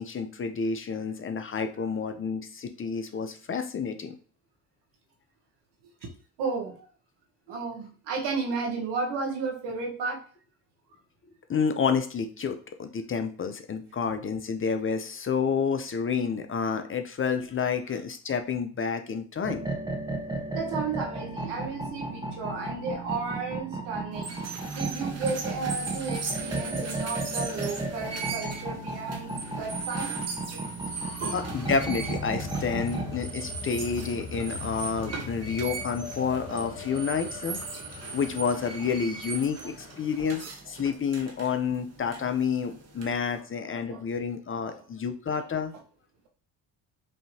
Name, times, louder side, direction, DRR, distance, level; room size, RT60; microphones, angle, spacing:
voice 1, 0.0-4.1 11.5-19.7 30.5-30.6 31.3-37.6 38.1-40.4 40.7-45.7, left 6 dB, 30° left, 8 dB, 0.6 m, -29 dB
voice 2, 6.4-6.9 7.5-10.2 17.9-18.0 20.5-24.5 24.7-30.2 31.2-31.4 43.9-44.0 44.6-44.8, right 4 dB, 75° right, 1 dB, 1.3 m, -33 dB
sound 1, 19.4-33.1, right 2 dB, 10° right, 1.1 m, -34 dB
sound 2, 24.1-43.4, right 4 dB, 35° right, 1.1 m, -39 dB
sound 3, 30.6-40.3, left 5 dB, 70° left, 1.4 m, -41 dB
5.4 x 2.8 x 2.8 m, 0.40 s
supercardioid pair, 65°, 41 cm